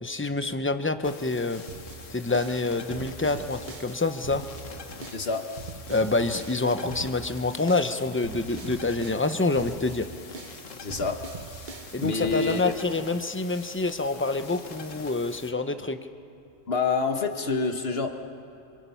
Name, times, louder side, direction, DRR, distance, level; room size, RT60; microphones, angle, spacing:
voice 1, 0.0-1.6 2.1-4.4 5.9-10.1 11.9-16.0, left 3 dB, 10° left, 9 dB, 0.7 m, -27 dB
sound 1, 1.0-15.5, left 4 dB, 90° left, 1.8 m, -45 dB
sound 2, 1.7-12.4, right 5 dB, 45° right, 1.0 m, -42 dB
voice 2, 5.1-5.5 10.8-11.2 12.0-12.7 16.7-18.1, left 4 dB, 55° left, 5 dB, 1.7 m, -27 dB
28.0 x 26.0 x 5.7 m, 2.7 s
omnidirectional pair, 1.3 m